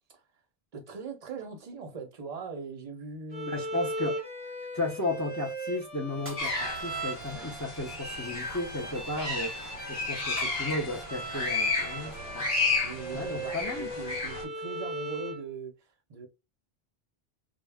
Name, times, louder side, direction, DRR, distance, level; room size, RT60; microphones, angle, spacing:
voice 1, 0.7-3.5 6.0-6.3 7.0-7.7 8.3-8.4 8.8-9.8 11.9-12.5 12.8-16.3, right 4 dB, 45° right, 0.6 m, -42 dB
Bowed string instrument, 3.3-15.5, right 1 dB, 10° left, 1.1 m, -39 dB
voice 2, 3.5-4.2 4.7-12.5 13.1-13.9, left 2 dB, 30° left, 0.3 m, -34 dB
sound 1, 6.2-7.6 10.4-11.3, right 2 dB, 15° right, 0.8 m, -48 dB
sound 2, 6.4-14.4, left 3 dB, 60° left, 1.2 m, -33 dB
2.2 x 2.0 x 3.3 m
omnidirectional pair, 1.0 m